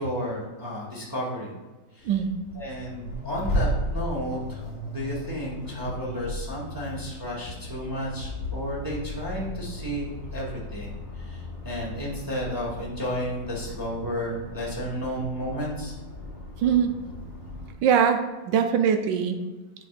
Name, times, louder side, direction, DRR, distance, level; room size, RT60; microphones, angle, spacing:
voice 1, 0.0-1.5 1.9-2.1 2.5-4.6 4.9-15.9, equal, 15° right, -4 dB, 1.0 m, -32 dB
Accelerating revving vroom, 2.0-17.7, left 1 dB, 40° left, 1.5 m, -35 dB
voice 2, 16.6-16.9 17.8-19.4, right 7 dB, 75° right, 6 dB, 1.2 m, -22 dB
8.4 x 5.3 x 2.4 m, 1.2 s
omnidirectional pair, 2.1 m